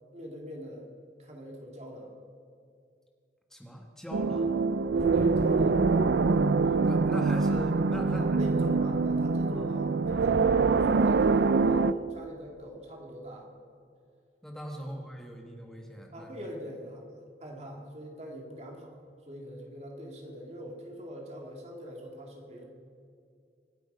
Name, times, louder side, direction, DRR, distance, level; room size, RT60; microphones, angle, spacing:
voice 1, 0.1-0.9 1.2-2.2 5.1-5.8 8.0-10.5 10.7-13.5 16.1-17.0 17.4-19.0 19.3-22.6, equal, 40° right, 1 dB, 2.4 m, -42 dB
voice 2, 3.5-4.6 6.6-8.8 9.5-9.8 14.4-16.3, equal, 5° left, 2 dB, 1.7 m, -41 dB
sound 1, 4.1-11.9, right 4 dB, 75° right, 0.5 m, -24 dB
25.5 x 8.4 x 5.6 m, 2.3 s
head